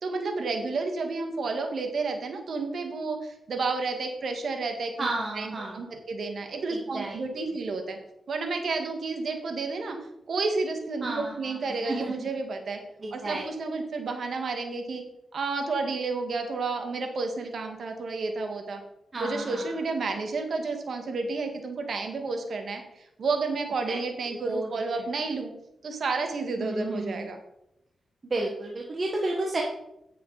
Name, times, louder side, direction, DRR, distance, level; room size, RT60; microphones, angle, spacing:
voice 1, 0.0-8.0 8.3-10.0 10.3-12.8 13.1-15.0 15.3-18.8 19.2-25.5 25.8-27.4, right 3 dB, 65° right, 4 dB, 1.8 m, -31 dB
voice 2, 5.0-5.8 6.7-7.2 11.0-12.3 13.0-13.5 19.1-19.8 23.9-24.0 24.3-25.0 26.6-27.3 28.2-29.6, right 2 dB, 40° right, -1 dB, 1.5 m, -32 dB
8.8 x 6.9 x 5.0 m, 0.84 s
cardioid pair, 70°, 0 cm